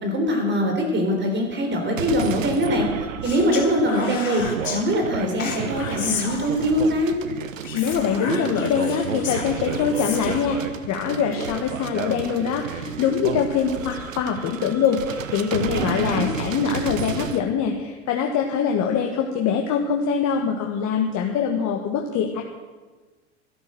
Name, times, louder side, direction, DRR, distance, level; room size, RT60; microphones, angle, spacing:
voice 1, 0.0-4.4 4.7-7.2 15.7-16.2, equal, 30° right, 2 dB, 3.7 m, -23 dB
sound 1, 2.0-17.4, right 7 dB, 90° right, 1.0 m, -32 dB
Speech, 3.2-4.8 5.4-6.8 7.6-10.5, left 6 dB, 85° left, 2.6 m, -33 dB
voice 2, 7.7-22.4, left 7 dB, 45° left, 2 dB, 1.7 m, -24 dB
12.5 x 12.5 x 7.7 m, 1.3 s
hypercardioid pair, 85°, 38 cm